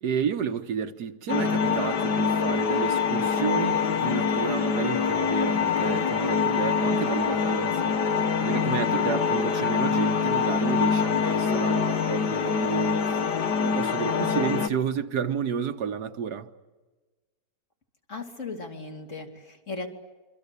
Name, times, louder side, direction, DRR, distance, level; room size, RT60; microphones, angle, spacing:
voice 1, 0.0-13.2 13.6-16.5, right 7 dB, 70° right, 1.7 m, -31 dB
sound 1, 1.3-14.7, left 6 dB, 90° left, 1.9 m, -25 dB
voice 2, 18.1-19.9, left 3 dB, 45° left, 3.1 m, -37 dB
27.0 x 24.5 x 8.3 m
omnidirectional pair, 1.8 m